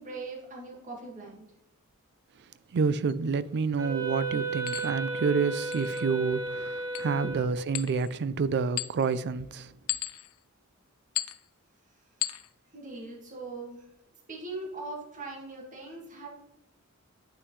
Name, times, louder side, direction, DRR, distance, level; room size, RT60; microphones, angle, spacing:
voice 1, 0.0-1.5 7.2-7.3 12.7-13.8 14.3-16.3, right 2 dB, 35° right, 1.9 m, -40 dB
voice 2, 2.7-9.7, right 5 dB, 50° right, 0.4 m, -28 dB
glass bottles, 3.1-3.2 4.7-4.9 5.7-6.0 6.9-7.1 7.7-8.2 8.8-9.2 9.9-10.4 11.1-11.4 12.2-12.5, left 15 dB, 75° left, 0.4 m, -35 dB
Wind instrument woodwind instrument, 3.8-7.6, right 3 dB, 15° right, 2.1 m, -33 dB
9.7 x 6.1 x 3.2 m
head